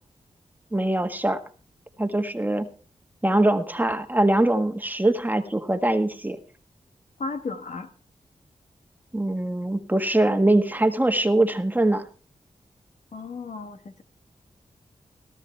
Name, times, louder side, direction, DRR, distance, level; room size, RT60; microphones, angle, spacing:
voice 1, 0.7-1.4 2.0-2.7 3.2-6.4 9.1-12.1, right 1 dB, 15° right, 7 dB, 1.5 m, -22 dB
voice 2, 7.2-7.9 13.1-14.0, left 3 dB, 65° left, 7 dB, 1.6 m, -34 dB
17.5 x 12.5 x 3.3 m, 0.38 s
cardioid pair, 60°, 13 cm